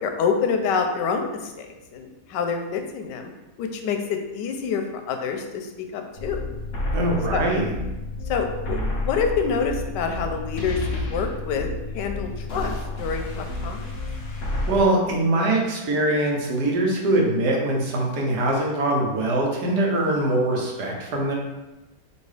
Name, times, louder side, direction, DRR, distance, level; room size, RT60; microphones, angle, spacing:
voice 1, 0.0-3.3 3.6-6.4 7.3-7.4 8.3-11.7 11.9-13.9, left 6 dB, 90° left, 5 dB, 1.2 m, -27 dB
sound 1, 6.2-14.8, left 2 dB, 55° left, 1.0 m, -30 dB
voice 2, 6.9-7.7 14.7-21.3, right 1 dB, 70° right, -1 dB, 1.4 m, -22 dB
5.4 x 2.8 x 3.3 m, 1.0 s
omnidirectional pair, 1.8 m